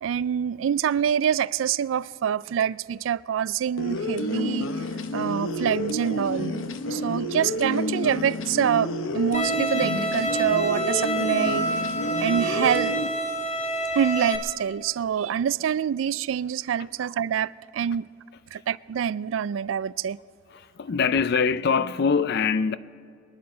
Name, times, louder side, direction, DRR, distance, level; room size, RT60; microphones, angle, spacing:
voice 1, 0.0-4.7 5.1-11.8 12.2-13.0 14.0-18.1 18.5-20.2, right 8 dB, 80° right, 0.3 m, -26 dB
sound 1, 3.8-13.1, left 1 dB, 85° left, 0.8 m, -30 dB
Bowed string instrument, 9.3-14.4, right 1 dB, 40° left, 1.5 m, -28 dB
voice 2, 20.5-22.8, left 5 dB, 55° left, 0.4 m, -23 dB
23.5 x 10.5 x 4.4 m
head